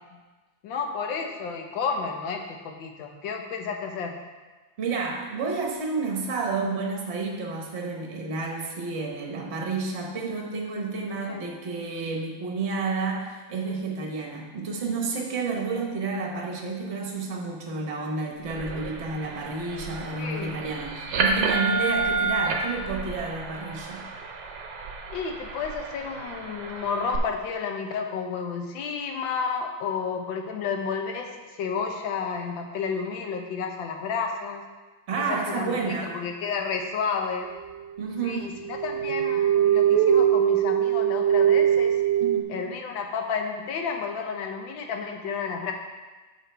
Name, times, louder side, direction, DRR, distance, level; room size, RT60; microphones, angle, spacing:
voice 1, 0.6-4.1 11.3-11.5 20.1-20.5 25.1-31.3 31.6-34.6 35.2-37.5 38.2-38.5 38.8-42.0 42.5-45.7, left 5 dB, 80° left, 3 dB, 1.6 m, -31 dB
voice 2, 4.8-24.0 35.1-36.2 38.0-38.6 42.1-42.6, right 4 dB, 40° right, 0 dB, 1.3 m, -30 dB
sound 1, 18.4-27.2, right 4 dB, 65° right, 1.3 m, -30 dB
sound 2, 37.7-37.8 38.4-42.4, right 9 dB, 85° right, 0.6 m, -21 dB
8.7 x 6.5 x 3.4 m, 1.3 s
omnidirectional pair, 2.1 m